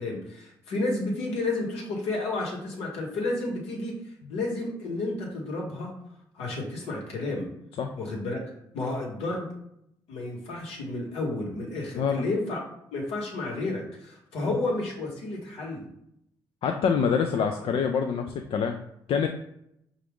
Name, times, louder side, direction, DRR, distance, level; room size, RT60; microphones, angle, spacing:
voice 1, 0.0-4.0 4.3-5.9 6.3-7.5 8.0-8.4 8.7-9.5 10.1-12.6 12.9-15.8, left 2 dB, 80° left, -1 dB, 1.1 m, -31 dB
voice 2, 16.6-18.8 19.1-19.3, left 6 dB, 65° left, 5 dB, 0.4 m, -25 dB
4.7 x 2.4 x 3.5 m, 0.77 s
supercardioid pair, 55°, 10 cm